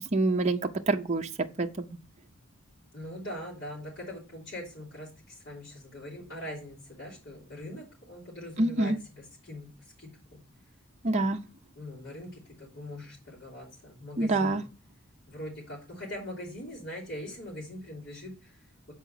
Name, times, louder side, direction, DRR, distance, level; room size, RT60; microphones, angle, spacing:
voice 1, 0.1-0.6 0.9-1.3 1.6-1.8 8.6-8.9 11.0-11.4 14.2-14.6, right 2 dB, 35° right, 4 dB, 0.5 m, -26 dB
voice 2, 2.9-10.4 11.7-14.7 15.3-18.9, left 1 dB, 60° left, -8 dB, 3.2 m, -42 dB
6.9 x 4.7 x 5.7 m, 0.33 s
head